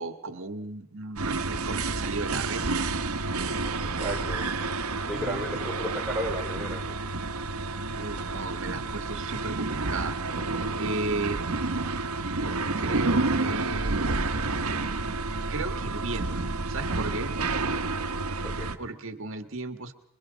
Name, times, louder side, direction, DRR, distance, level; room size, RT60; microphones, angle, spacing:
voice 1, 0.0-2.9 5.0-5.6 7.9-10.2 10.7-11.4 12.8-14.0 15.5-17.4 18.8-19.9, right 3 dB, 60° right, 8 dB, 1.6 m, -34 dB
sound 1, 1.2-18.8, right 3 dB, 90° right, 1.3 m, -30 dB
voice 2, 3.8-4.5 5.1-7.0 18.4-18.7, equal, 5° right, -4 dB, 4.0 m, -34 dB
26.0 x 22.5 x 5.2 m, 0.71 s
head